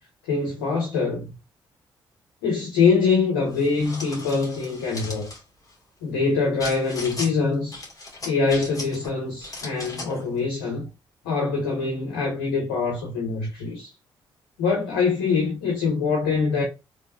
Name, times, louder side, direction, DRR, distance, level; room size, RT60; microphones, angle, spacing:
voice 1, 0.2-1.2 2.4-5.3 6.0-7.7 8.2-10.9 11.2-13.9 14.6-16.6, left 4 dB, 90° left, 0.7 m, -24 dB
sound 1, 3.5-5.4 6.6-7.3 7.7-9.1 9.4-10.2, left 2 dB, 30° left, 1.7 m, -37 dB
3.1 x 2.9 x 2.3 m
hypercardioid pair, 45°, 11 cm